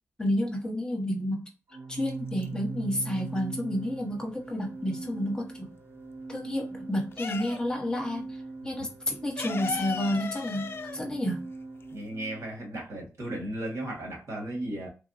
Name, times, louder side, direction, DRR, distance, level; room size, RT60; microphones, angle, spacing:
voice 1, 0.2-1.4 1.9-5.7 6.3-11.5, left 1 dB, 15° left, 0.8 m, -30 dB
Organ, 1.7-12.5, right 3 dB, 50° right, 0.4 m, -41 dB
sound 1, 2.0-2.9 3.2-5.2 5.5-7.9 8.2-8.3 8.6-12.2, left 5 dB, 45° left, 0.3 m, -37 dB
voice 2, 11.9-14.9, right 1 dB, 70° right, 1.6 m, -35 dB
3.4 x 2.1 x 2.7 m
wide cardioid pair, 135°, 5 cm